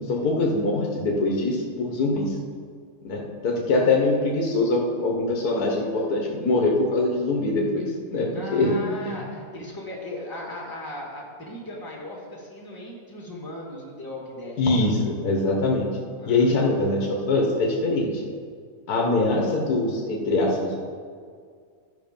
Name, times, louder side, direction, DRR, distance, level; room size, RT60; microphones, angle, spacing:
voice 1, 0.1-2.4 3.0-9.2 14.6-15.9 16.3-18.2 18.9-20.7, left 2 dB, 80° left, -1 dB, 1.7 m, -23 dB
voice 2, 8.3-15.0 16.2-16.6, left 1 dB, 15° left, -3 dB, 1.9 m, -37 dB
12.0 x 5.8 x 5.3 m, 2.1 s
omnidirectional pair, 1.6 m